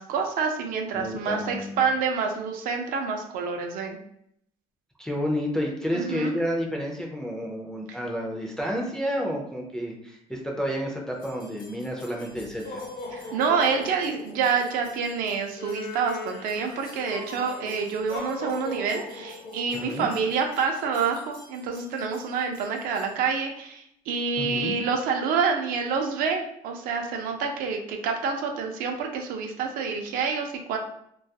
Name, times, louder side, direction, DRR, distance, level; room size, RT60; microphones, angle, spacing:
voice 1, 0.0-4.0 5.9-6.4 7.9-8.0 13.1-30.8, right 5 dB, 75° right, 3 dB, 0.5 m, -27 dB
voice 2, 0.9-1.8 5.0-12.8 13.2-13.3 19.7-20.1 24.4-24.7, equal, 5° left, -1 dB, 0.3 m, -30 dB
sound 1, 11.2-23.1, left 3 dB, 75° left, 0.7 m, -41 dB
2.3 x 2.2 x 2.6 m, 0.72 s
cardioid pair, 160°, 15 cm